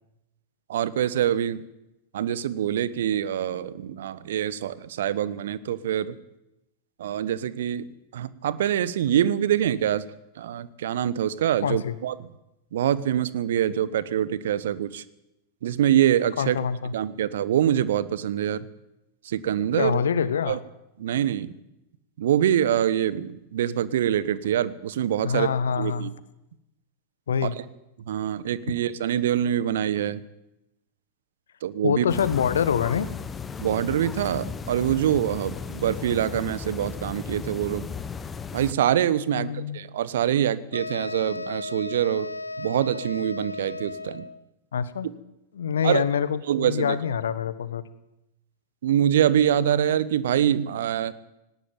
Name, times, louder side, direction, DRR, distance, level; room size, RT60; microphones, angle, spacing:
voice 1, 0.7-1.6 2.1-6.1 7.0-7.9 8.1-10.1 10.4-12.1 12.7-15.0 15.6-16.6 16.9-18.7 19.2-20.0 20.5-20.6 21.0-21.5 22.2-25.5 25.8-26.1 28.1-30.2 31.6-32.0 33.6-37.9 38.5-42.3 42.6-44.3 45.8-46.0 46.5-47.0 48.8-51.1, right 10 dB, 60° right, 17 dB, 1.2 m, -25 dB
voice 2, 11.6-12.0 16.4-16.9 19.8-20.6 25.2-26.1 27.3-27.5 31.8-33.1 39.3-39.8 44.7-45.1 45.5-47.8, left 7 dB, 65° left, 15 dB, 1.4 m, -25 dB
sound 1, 32.1-38.7, left 5 dB, 20° left, 1.4 m, -35 dB
sound 2, 40.7-44.4, left 3 dB, 80° left, 1.1 m, -35 dB
18.5 x 18.0 x 9.0 m, 0.90 s
figure-of-eight pair, 90°, 0 cm